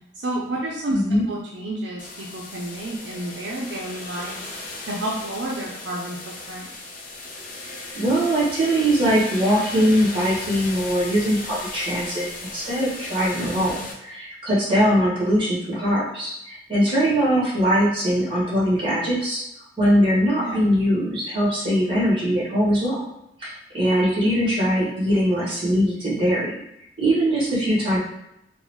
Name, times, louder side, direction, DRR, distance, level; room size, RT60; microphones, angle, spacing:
voice 1, 0.2-1.0 1.3-4.4 4.9-6.2 6.5-6.7 13.4-13.7 20.4-20.7, right 1 dB, 70° right, -2 dB, 0.5 m, -30 dB
voice 2, 0.9-1.2 7.9-12.2 12.5-13.8 14.1-19.4 19.8-23.0 23.4-26.5 27.0-28.0, equal, 30° right, -6 dB, 1.5 m, -21 dB
sound 1, 2.0-13.9, left 2 dB, 50° left, 0.6 m, -36 dB
3.9 x 2.2 x 3.0 m, 0.82 s
head